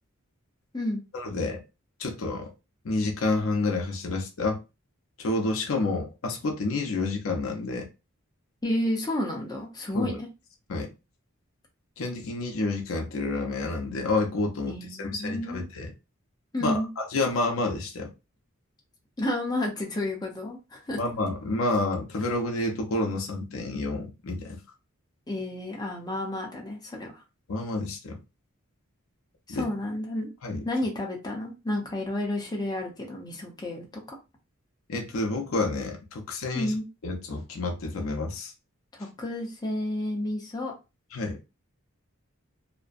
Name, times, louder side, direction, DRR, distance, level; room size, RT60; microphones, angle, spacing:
voice 1, 1.1-1.6 2.0-2.5 2.8-4.6 5.2-7.9 9.9-10.2 10.7-10.9 12.0-15.9 16.6-18.1 21.0-24.6 27.5-28.2 29.5-29.7 30.4-30.6 34.9-36.8 37.0-38.5 41.1-41.4, left 2 dB, 70° left, 0.6 m, -29 dB
voice 2, 8.6-10.3 14.7-15.7 16.5-16.9 19.2-21.0 25.3-27.2 29.5-30.3 30.6-33.8 36.5-36.8 38.9-40.7, left 1 dB, 20° left, 0.6 m, -31 dB
2.5 x 2.1 x 2.4 m
head